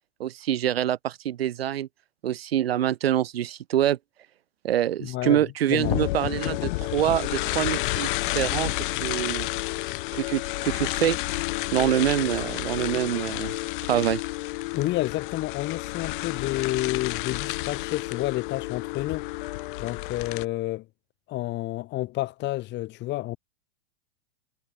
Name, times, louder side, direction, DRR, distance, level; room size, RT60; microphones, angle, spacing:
voice 1, 0.2-1.9 2.2-4.0 4.6-8.7 9.0-9.5 10.1-11.2 11.7-13.6 13.9-14.2, right 11 dB, 75° right, 3.3 m, -25 dB
voice 2, 5.0-5.4 5.7-6.0 6.4-6.6 14.7-19.3 19.8-20.8 21.3-23.4, left 17 dB, 35° left, 6.5 m, -30 dB
sound 1, 5.8-20.4, left 20 dB, 55° left, 7.8 m, -30 dB
hypercardioid pair, 130°, 30 cm